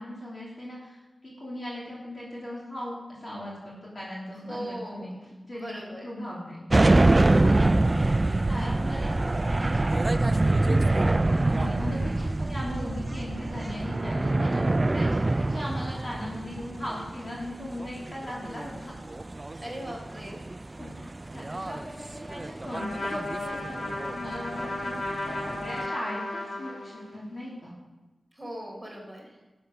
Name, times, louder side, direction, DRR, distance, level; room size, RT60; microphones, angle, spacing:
voice 1, 0.0-5.1 5.4-6.6 7.2-8.2 8.5-9.8 10.1-18.9 20.8-27.7, left 1 dB, 35° left, -5 dB, 2.7 m, -38 dB
voice 2, 4.4-5.1 5.5-6.0 19.5-20.4 28.4-29.3, equal, ahead, -2 dB, 3.9 m, -39 dB
sound 1, 6.7-25.9, right 2 dB, 30° right, 0.3 m, -25 dB
Trumpet, 22.7-27.3, left 1 dB, 60° left, 2.1 m, -34 dB
12.0 x 7.9 x 5.8 m, 1.2 s
wide cardioid pair, 95°, 0 cm